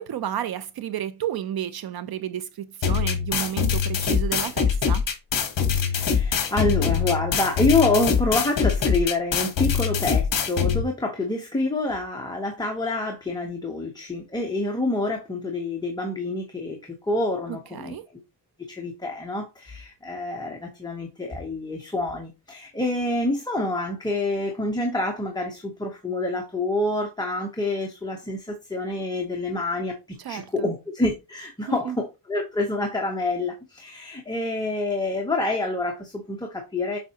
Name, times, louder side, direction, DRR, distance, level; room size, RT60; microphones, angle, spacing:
voice 1, 0.0-5.0 17.5-18.0 30.2-30.7 31.7-32.0, right 10 dB, 60° right, 0.6 m, -32 dB
sound 1, 2.8-10.8, left 7 dB, 55° left, 1.4 m, -23 dB
voice 2, 5.8-16.8 17.0-18.0 18.7-37.0, left 2 dB, 10° left, 0.9 m, -27 dB
7.3 x 4.6 x 2.9 m
wide cardioid pair, 165°, 41 cm